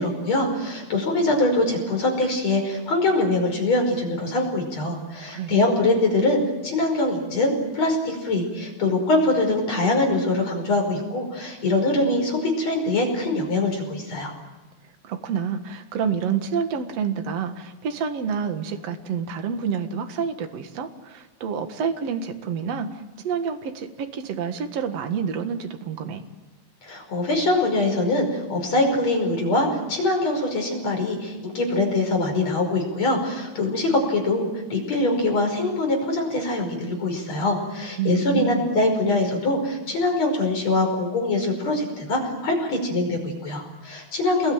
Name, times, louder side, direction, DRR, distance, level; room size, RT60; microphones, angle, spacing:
voice 1, 0.0-14.3 26.8-44.5, left 2 dB, 35° left, 3 dB, 6.2 m, -23 dB
voice 2, 5.3-5.8 15.0-26.3 38.0-38.7, right 7 dB, 55° right, 6 dB, 1.9 m, -28 dB
28.5 x 22.0 x 9.0 m, 1.1 s
omnidirectional pair, 5.4 m